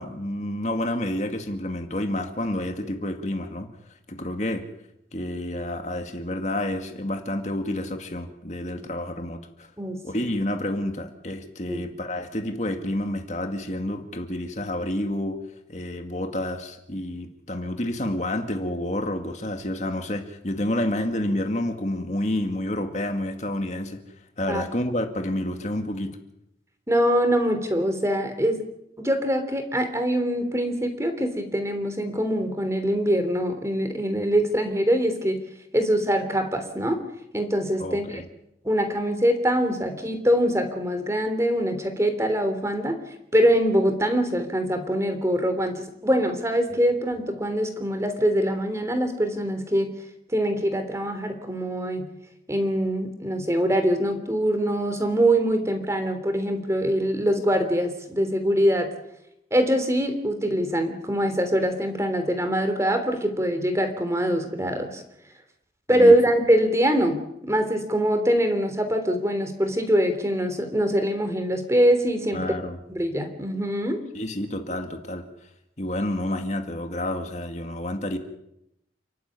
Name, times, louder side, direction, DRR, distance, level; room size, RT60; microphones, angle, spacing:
voice 1, 0.0-3.7 4.1-4.7 5.1-9.7 10.0-15.4 15.7-24.0 24.4-26.2 37.8-38.2 65.9-66.2 72.3-72.8 74.1-75.3 75.8-78.2, left 1 dB, 40° left, 5 dB, 2.2 m, -29 dB
voice 2, 9.8-10.3 11.7-11.8 24.5-24.6 26.9-28.6 29.0-35.4 35.7-37.0 37.3-38.2 38.6-43.0 43.3-49.9 50.3-52.1 52.5-58.9 59.5-65.0 65.9-72.4 72.9-74.0, equal, 15° right, 7 dB, 3.2 m, -23 dB
29.5 x 13.0 x 9.7 m, 0.83 s
head